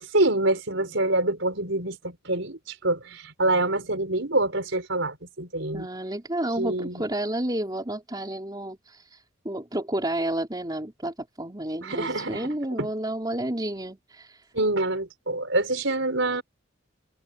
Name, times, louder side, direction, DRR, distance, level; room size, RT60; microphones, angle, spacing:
voice 1, 0.1-5.9 6.6-7.0 11.8-12.5 12.8-12.9 14.5-16.4, right 2 dB, 65° right, 6.1 m, -26 dB
voice 2, 5.7-14.4, right 1 dB, 20° right, 4.5 m, -31 dB
head